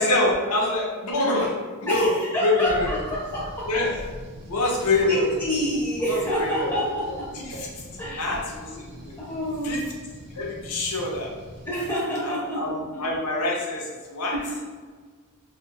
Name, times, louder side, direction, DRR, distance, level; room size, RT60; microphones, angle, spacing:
voice 1, 0.0-1.5 1.8-2.1 2.4-3.0 3.6-4.0 4.5-5.3 6.0-6.7 7.3-9.2 9.6-9.8 10.3-11.3 12.2-14.3, left 2 dB, 85° left, -2 dB, 0.6 m, -26 dB
voice 2, 1.9-3.7 5.0-7.4 8.0-8.4 9.3-9.8 11.7-13.0 14.3-14.6, equal, 10° left, -7 dB, 0.5 m, -27 dB
sound 1, 2.6-11.9, equal, 55° right, 0.4 m, -42 dB
2.6 x 2.1 x 2.6 m, 1.5 s
head